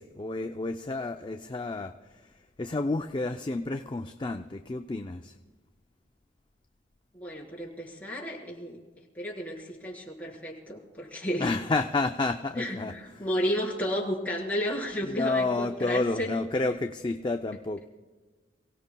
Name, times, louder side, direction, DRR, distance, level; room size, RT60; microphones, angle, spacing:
voice 1, 0.0-5.4 11.4-13.3 15.0-17.9, left 3 dB, 25° left, 6 dB, 0.4 m, -30 dB
voice 2, 7.1-8.8 9.1-11.5 12.5-16.3, equal, 10° left, -5 dB, 4.0 m, -32 dB
29.0 x 17.5 x 2.3 m, 1.3 s
head